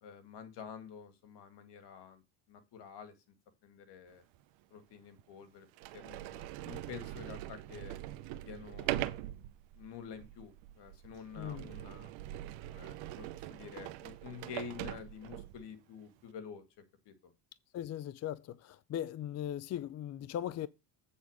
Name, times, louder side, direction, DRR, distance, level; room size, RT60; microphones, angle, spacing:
voice 1, 0.0-2.2 2.5-3.1 3.6-4.2 4.7-5.7 5.9-8.0 8.4-9.1 9.7-12.1 12.7-16.6 17.1-17.3, left 6 dB, 60° left, 2.0 m, -49 dB
Sliding door, 4.3-4.4 5.2-5.3 5.7-15.7, right 15 dB, 80° right, 0.9 m, -42 dB
voice 2, 11.4-11.7 17.7-20.7, left 11 dB, 35° left, 0.4 m, -39 dB
8.3 x 4.1 x 6.2 m
supercardioid pair, 105°, 45 cm